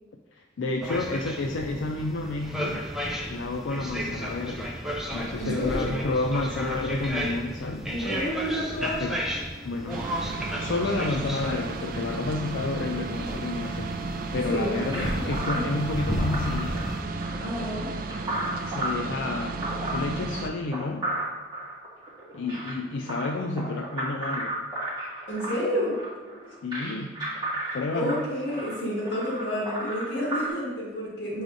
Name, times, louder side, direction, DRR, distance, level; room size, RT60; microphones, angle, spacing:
voice 1, 0.3-2.9 3.3-4.7 5.1-7.9 8.8-9.2 9.6-14.0 14.3-17.0 18.7-21.2 22.3-24.5 26.6-27.2 27.7-28.3, left 2 dB, 80° left, 3 dB, 0.4 m, -30 dB
sound 1, 0.8-17.0, equal, ahead, 0.5 m, -34 dB
voice 2, 5.4-5.9 7.9-9.0 14.3-15.0 15.5-15.6 17.4-17.9 25.3-26.0 27.9-31.4, equal, 60° left, -5 dB, 1.6 m, -30 dB
sound 2, 9.9-20.5, right 3 dB, 50° right, 0.4 m, -34 dB
sound 3, 14.9-30.5, right 1 dB, 25° right, 1.9 m, -34 dB
8.1 x 4.9 x 2.6 m, 1.2 s
head